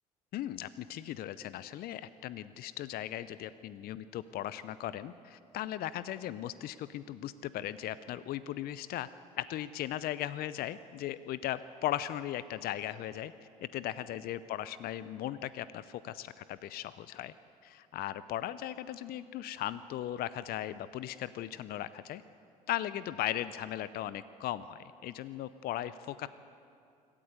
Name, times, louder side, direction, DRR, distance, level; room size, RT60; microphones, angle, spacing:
voice 1, 0.3-9.1 9.4-13.3 13.6-17.3 17.6-22.2 22.7-26.3, left 12 dB, 55° left, 15 dB, 0.7 m, -37 dB
25.5 x 14.0 x 8.1 m, 2.5 s
hypercardioid pair, 60°, 19 cm